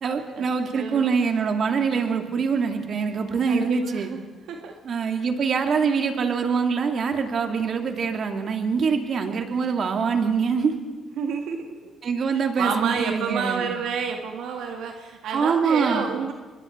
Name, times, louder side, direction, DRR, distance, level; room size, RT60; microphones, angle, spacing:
voice 1, 0.0-4.1 4.8-10.7 12.0-13.7 15.3-16.1, right 5 dB, 55° right, 4 dB, 2.6 m, -24 dB
voice 2, 0.7-1.1 3.5-4.2 4.5-4.8 11.2-11.9 12.3-16.3, right 6 dB, 80° right, 3 dB, 1.8 m, -29 dB
26.5 x 21.5 x 4.6 m, 1.4 s
cardioid pair, 90°, 0 cm